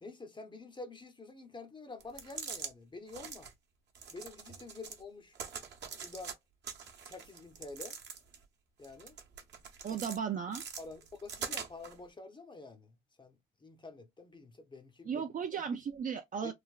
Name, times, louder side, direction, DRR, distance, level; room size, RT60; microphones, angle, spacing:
voice 1, 0.0-3.5 4.1-5.4 6.0-6.3 7.0-8.0 8.8-9.2 9.9-10.0 10.8-13.4 13.6-15.2 16.4-16.5, left 3 dB, 25° left, 0.5 m, -48 dB
sound 1, 2.0-2.7 3.1-3.5 3.9-5.0 5.3-6.3 6.6-8.4 8.8-10.2 10.5-11.9, right 6 dB, 60° right, 0.8 m, -43 dB
voice 2, 9.8-10.6 15.1-16.5, right 7 dB, 45° right, 0.4 m, -35 dB
3.2 x 2.1 x 2.3 m
cardioid pair, 90°, 20 cm